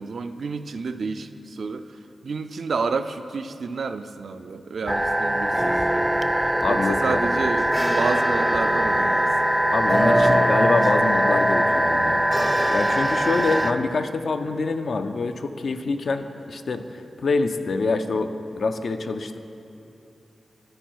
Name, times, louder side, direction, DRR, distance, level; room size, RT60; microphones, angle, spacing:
voice 1, 0.0-1.9 2.2-5.8 6.7-9.3 13.4-13.6, right 4 dB, 75° right, 9 dB, 0.3 m, -30 dB
sound 1, 4.9-13.7, equal, 5° right, 0.4 m, -21 dB
voice 2, 6.6-7.3 9.7-12.2 12.7-18.3 18.6-19.4, left 3 dB, 75° left, 8 dB, 0.4 m, -25 dB
13.0 x 4.6 x 4.6 m, 2.8 s
cardioid pair, 55°, 0 cm